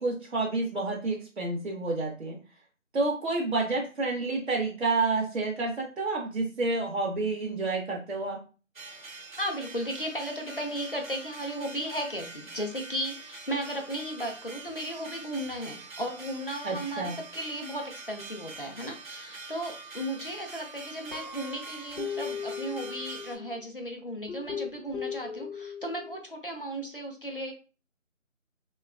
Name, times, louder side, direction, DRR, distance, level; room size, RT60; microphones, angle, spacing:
voice 1, 0.0-2.4 2.9-8.4 16.6-17.2, right 3 dB, 60° right, -2 dB, 0.6 m, -29 dB
sound 1, 8.7-23.4, right 3 dB, 85° right, 0.8 m, -45 dB
voice 2, 9.3-27.5, equal, 45° left, 2 dB, 0.4 m, -35 dB
Guitar, 21.1-23.6 24.3-26.2, left 7 dB, 85° left, 0.7 m, -38 dB
2.8 x 2.2 x 2.3 m, 0.34 s
figure-of-eight pair, 165°, 40 cm